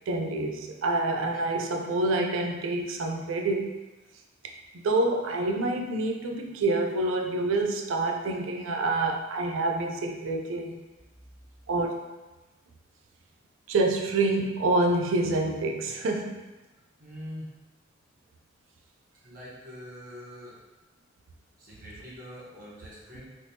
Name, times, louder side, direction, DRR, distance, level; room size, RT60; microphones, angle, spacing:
voice 1, 0.1-3.7 4.7-10.8 11.7-12.1 13.7-16.4, right 2 dB, 90° right, 2 dB, 0.4 m, -27 dB
voice 2, 17.0-17.5 19.2-20.6 21.6-23.3, equal, 45° right, -7 dB, 1.1 m, -43 dB
3.3 x 2.8 x 2.8 m, 1.1 s
head